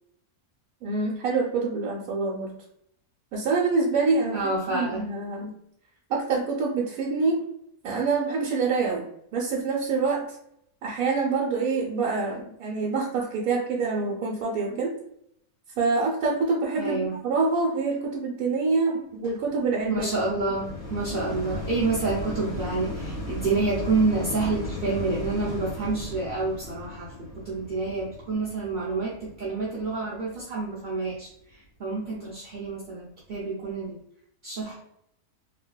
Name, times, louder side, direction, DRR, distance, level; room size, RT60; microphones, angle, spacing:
voice 1, 0.8-2.6 3.3-5.5 6.1-7.4 7.8-9.1 9.3-10.4 10.8-14.9 15.8-20.1, right 4 dB, 75° right, -4 dB, 1.1 m, -26 dB
voice 2, 4.3-5.1 16.8-17.2 18.9-19.0 19.9-34.0 34.4-34.9, right 3 dB, 50° right, -6 dB, 0.6 m, -28 dB
sound 1, 19.2-30.5 31.1-31.2, left 2 dB, 85° left, 1.6 m, -36 dB
3.2 x 2.7 x 2.2 m, 0.73 s
omnidirectional pair, 1.6 m